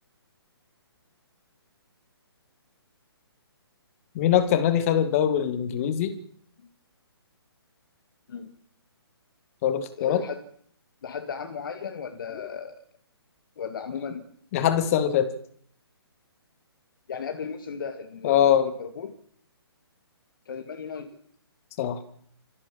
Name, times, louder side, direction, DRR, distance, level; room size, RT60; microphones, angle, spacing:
voice 1, 4.1-6.1 9.6-10.2 14.5-15.3 18.2-18.7 21.8-22.0, left 10 dB, 35° left, 11 dB, 2.2 m, -22 dB
voice 2, 10.0-10.4 11.0-12.8 13.6-14.3 17.1-19.2 20.5-21.1, left 6 dB, 55° left, 7 dB, 2.2 m, -35 dB
24.5 x 15.0 x 7.6 m, 0.63 s
figure-of-eight pair, 140°, 14 cm